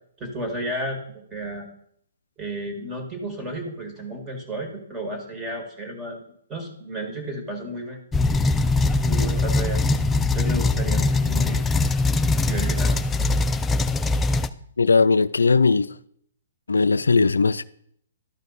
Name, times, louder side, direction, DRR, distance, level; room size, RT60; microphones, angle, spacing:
voice 1, 0.2-1.7 2.4-6.2 6.5-8.0 9.0-9.8 10.3-11.6 12.4-13.0, right 1 dB, 20° right, 1.8 m, -32 dB
sound 1, 8.1-14.5, left 3 dB, 10° left, 0.3 m, -21 dB
voice 2, 14.8-15.9 16.7-17.6, left 4 dB, 90° left, 0.3 m, -18 dB
12.0 x 4.9 x 4.0 m
hypercardioid pair, 130°, 0 cm